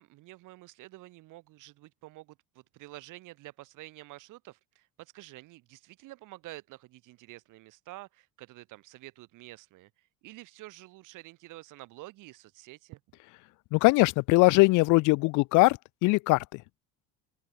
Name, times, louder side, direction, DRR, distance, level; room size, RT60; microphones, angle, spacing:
voice 1, 0.0-13.0, right 18 dB, 70° right, 7.7 m, -49 dB
voice 2, 13.7-16.4, left 24 dB, 65° left, 0.5 m, -21 dB
open air
cardioid pair, 110°, 32 cm